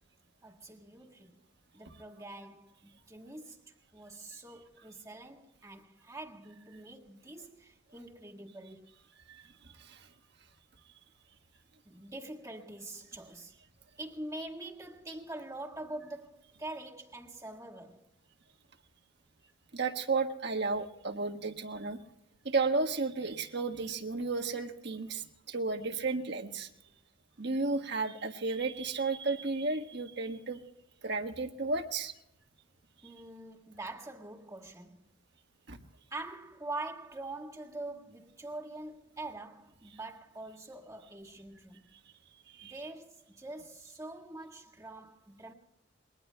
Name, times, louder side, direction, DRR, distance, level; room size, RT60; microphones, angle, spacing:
voice 1, 0.4-1.4 1.7-8.9 11.9-13.6 14.0-18.1 33.0-35.1 36.1-41.8 42.6-45.5, right 2 dB, 15° right, 1.7 m, -44 dB
voice 2, 19.7-22.0 22.4-26.7 27.4-30.6 31.0-32.1 35.7-35.8 42.5-42.7, right 3 dB, 55° right, 1.5 m, -33 dB
29.0 x 22.5 x 2.3 m
head